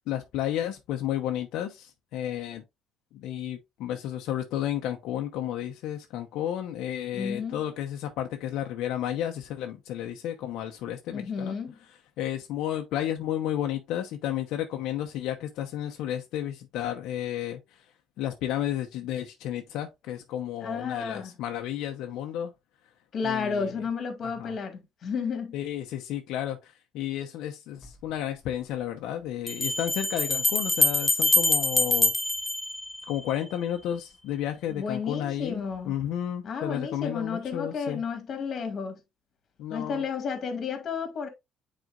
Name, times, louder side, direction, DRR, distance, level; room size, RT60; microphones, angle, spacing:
voice 1, 0.1-2.6 3.1-11.6 12.2-17.8 18.2-22.5 23.2-23.8 24.2-24.6 25.5-32.1 33.1-38.0 39.6-40.0, left 11 dB, 80° left, 0.8 m, -32 dB
voice 2, 7.1-7.6 11.1-11.7 20.6-21.3 23.1-25.5 34.7-36.0 36.4-39.0 39.7-41.3, left 5 dB, 40° left, 2.0 m, -32 dB
Bell, 27.8-27.9 29.5-33.4, left 2 dB, 10° left, 0.6 m, -25 dB
9.2 x 4.2 x 2.4 m
cardioid pair, 135°, 0 cm